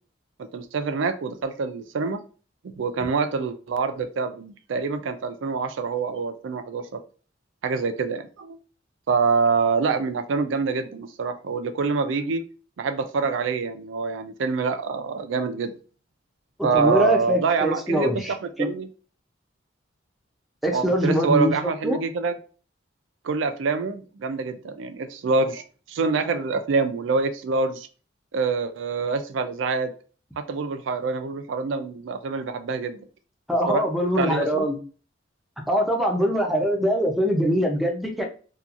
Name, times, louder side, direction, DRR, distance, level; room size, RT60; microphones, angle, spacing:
voice 1, 0.4-2.2 2.8-6.9 7.6-8.6 9.1-12.4 12.8-15.7 16.6-18.1 18.4-18.9 20.7-22.3 23.2-27.9 28.3-29.9 30.4-33.1 33.7-33.8 34.2-34.7, right 4 dB, 90° right, 8 dB, 0.4 m, -26 dB
voice 2, 16.7-18.7 20.6-21.5 21.8-22.0 33.5-34.8 35.7-38.3, equal, ahead, 1 dB, 0.4 m, -23 dB
2.8 x 2.3 x 2.4 m, 0.38 s
head